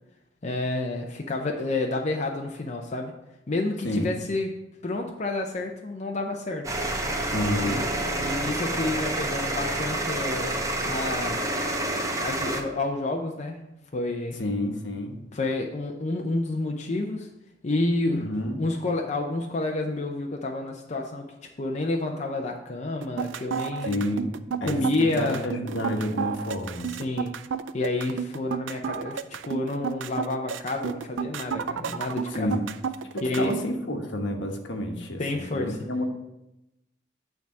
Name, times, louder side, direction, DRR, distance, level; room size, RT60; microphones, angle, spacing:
voice 1, 0.4-3.1 3.5-4.6 4.8-6.7 7.6-7.9 8.2-11.4 12.2-13.6 13.9-14.4 15.3-17.3 17.6-18.3 18.6-21.3 21.6-24.0 24.6-25.4 26.9-27.3 27.7-32.5 33.2-33.5 35.2-35.8, left 2 dB, 40° left, 2 dB, 0.6 m, -29 dB
sound 1, 6.6-12.6, right 1 dB, 20° right, 0.8 m, -28 dB
voice 2, 7.3-7.9 14.4-15.2 18.1-18.6 23.8-24.3 24.6-26.9 32.3-32.6 33.1-36.1, left 1 dB, 70° left, 3 dB, 1.2 m, -29 dB
sound 2, 23.0-33.6, right 7 dB, 85° right, 0.4 m, -31 dB
9.1 x 3.5 x 6.0 m, 0.92 s
head